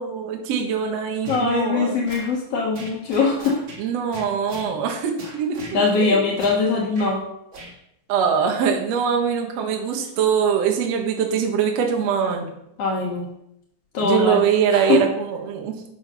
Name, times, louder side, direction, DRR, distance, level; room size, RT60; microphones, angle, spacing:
voice 1, 0.0-2.0 3.8-5.8 8.1-12.5 14.0-15.9, right 7 dB, 80° right, 2 dB, 1.4 m, -22 dB
sound 1, 1.2-1.5 2.1-2.3 2.7-3.8 4.1-4.7 5.2-5.8 6.4-6.6 6.9-7.1 7.5-7.7, right 2 dB, 50° right, 1.4 m, -38 dB
voice 2, 1.3-3.6 5.7-7.2 12.8-13.3 13.9-14.4 14.7-15.0, left 4 dB, 85° left, -2 dB, 1.3 m, -21 dB
8.1 x 6.6 x 5.5 m, 0.78 s
omnidirectional pair, 5.1 m